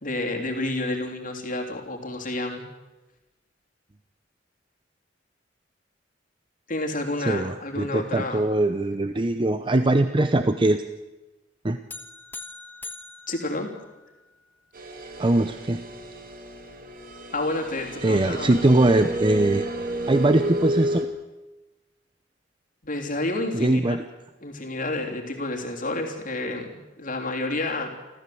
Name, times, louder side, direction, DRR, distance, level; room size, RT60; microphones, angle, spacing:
voice 1, 0.0-2.6 6.7-8.5 13.3-13.7 17.3-18.5 22.8-24.0 24.4-27.9, left 2 dB, 45° left, 2 dB, 3.2 m, -30 dB
voice 2, 7.2-10.8 11.6-11.8 15.2-15.8 18.0-19.7 20.1-21.1 23.5-24.0, right 2 dB, 25° right, 9 dB, 0.7 m, -21 dB
sound 1, 11.9-14.4, left 3 dB, 10° left, 1.4 m, -42 dB
sound 2, 14.7-21.0, right 1 dB, 50° right, 2.3 m, -31 dB
28.0 x 14.5 x 7.8 m, 1.1 s
head